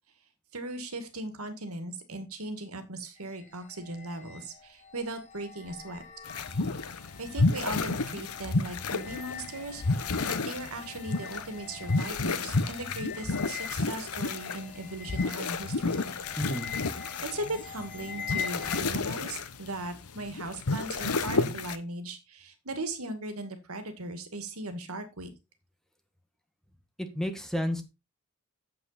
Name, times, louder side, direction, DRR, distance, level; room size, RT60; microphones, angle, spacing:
voice 1, 0.5-6.0 7.2-16.1 17.2-25.3, right 2 dB, 70° right, 8 dB, 2.1 m, -38 dB
sound 1, 3.2-19.0, left 6 dB, 35° left, 5.7 m, -43 dB
sound 2, 6.2-21.8, left 3 dB, 85° left, 1.0 m, -31 dB
voice 2, 16.4-16.7 27.0-27.8, equal, ahead, 5 dB, 1.6 m, -31 dB
8.8 x 8.0 x 4.2 m, 0.25 s
head